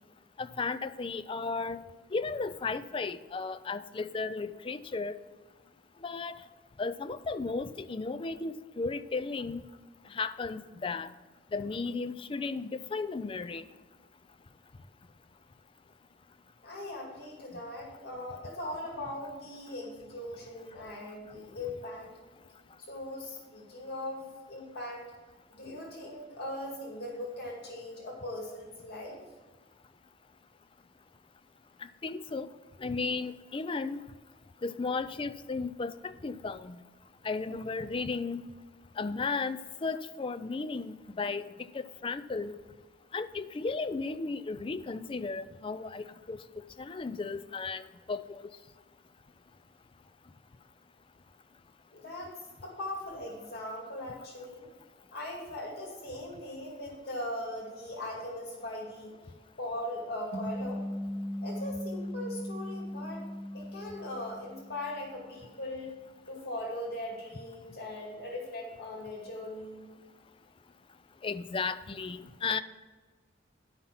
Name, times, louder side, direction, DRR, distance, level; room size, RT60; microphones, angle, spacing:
voice 1, 0.4-1.8 2.1-5.2 6.0-6.4 6.8-9.7 10.1-11.1 11.5-13.6 31.8-32.5 32.8-34.0 34.6-36.8 37.2-38.5 39.0-41.5 41.7-42.6 43.1-48.4 71.2-72.6, left 4 dB, 25° left, 12 dB, 0.4 m, -35 dB
voice 2, 16.6-22.1 22.8-25.0 25.5-29.2 51.9-54.7 55.1-59.3 59.6-60.8 61.4-63.2 63.5-65.9 66.3-69.9, left 1 dB, 55° left, -2 dB, 2.3 m, -40 dB
sound 1, 60.3-65.0, equal, 75° right, 2.3 m, -38 dB
11.0 x 5.5 x 5.8 m, 1.4 s
head